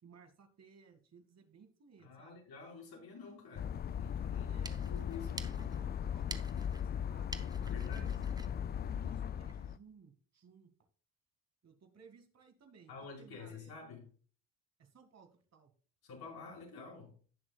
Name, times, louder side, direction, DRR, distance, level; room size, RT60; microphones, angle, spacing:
voice 1, 0.0-2.4 4.3-5.3 5.6-7.3 7.6-10.7 11.6-13.7 14.8-15.7, right 5 dB, 40° right, 2.2 m, -61 dB
voice 2, 2.0-5.4 7.7-8.1 12.9-14.1 16.0-17.1, left 5 dB, 60° left, 5.1 m, -49 dB
sound 1, 3.5-9.8, left 8 dB, 25° left, 0.3 m, -38 dB
sound 2, 4.4-9.7, right 2 dB, 10° right, 0.9 m, -51 dB
18.0 x 6.1 x 2.4 m
supercardioid pair, 75°, 41 cm